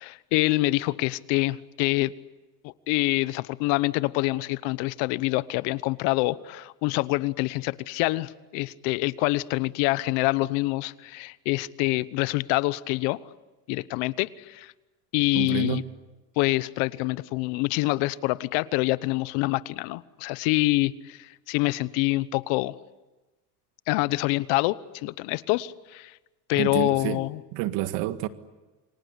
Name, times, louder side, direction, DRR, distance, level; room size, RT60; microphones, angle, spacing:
voice 1, 0.0-2.1 2.6-13.2 13.7-14.7 15.1-15.8 16.4-22.8 23.9-26.1 26.5-27.4, left 21 dB, 75° left, 1.1 m, -26 dB
voice 2, 15.3-15.9 26.6-27.2 27.5-28.3, right 14 dB, 70° right, 1.9 m, -29 dB
28.5 x 25.0 x 8.3 m
supercardioid pair, 100°, 44 cm